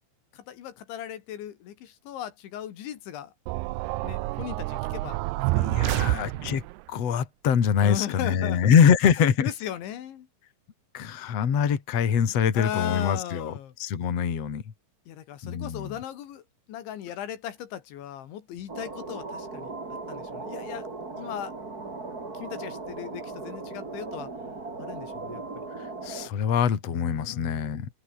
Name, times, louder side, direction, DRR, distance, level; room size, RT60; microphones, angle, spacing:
voice 1, 0.3-3.3 4.0-5.2 5.5-6.5 7.8-8.7 9.4-10.3 12.6-13.7 15.1-16.4 16.7-19.7 20.1-20.9 21.2-21.5 22.3-24.3 24.8-25.7 26.9-27.9, left 11 dB, 80° left, 4.6 m, -37 dB
sound 1, 3.5-6.8, right 20 dB, 80° right, 2.5 m, -28 dB
voice 2, 5.6-6.6 6.9-9.5 10.9-14.6 15.4-16.0 25.8-27.9, left 7 dB, 40° left, 3.0 m, -24 dB
sound 2, 18.7-26.3, right 3 dB, 20° right, 3.8 m, -38 dB
omnidirectional pair, 5.2 m